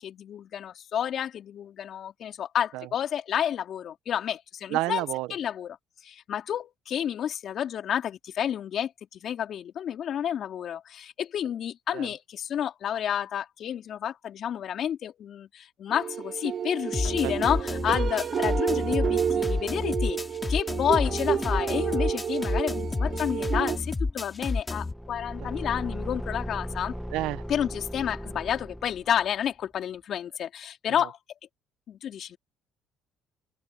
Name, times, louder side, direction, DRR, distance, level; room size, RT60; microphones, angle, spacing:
voice 1, 0.0-5.0 5.3-5.8 6.0-20.2 20.5-27.0 27.5-31.2 31.9-32.4, left 9 dB, 55° left, 3.8 m, -30 dB
voice 2, 4.7-5.3 11.9-12.1 17.2-17.3 27.1-27.4, right 17 dB, 80° right, 1.1 m, -29 dB
sound 1, 15.9-23.8, right 8 dB, 50° right, 0.8 m, -30 dB
sound 2, 16.9-24.9, left 3 dB, 20° left, 3.9 m, -30 dB
Car / Engine, 24.7-29.3, equal, ahead, 1.5 m, -37 dB
open air
supercardioid pair, 75°, 0 cm